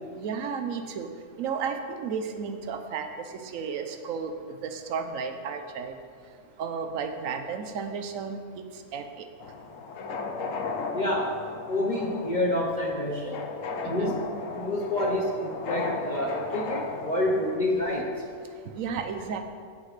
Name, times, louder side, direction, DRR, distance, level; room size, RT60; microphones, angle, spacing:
voice 1, 0.1-1.1 1.4-4.3 4.6-5.9 6.6-9.3 13.8-14.2 18.8-19.4, right 6 dB, 65° right, 7 dB, 1.1 m, -33 dB
sound 1, 9.4-17.6, left 4 dB, 60° left, 1.1 m, -35 dB
voice 2, 10.9-11.4 11.7-13.4 13.9-14.2 14.5-18.1, left 1 dB, 35° left, -1 dB, 0.9 m, -28 dB
17.0 x 6.1 x 3.3 m, 2.2 s
omnidirectional pair, 1.6 m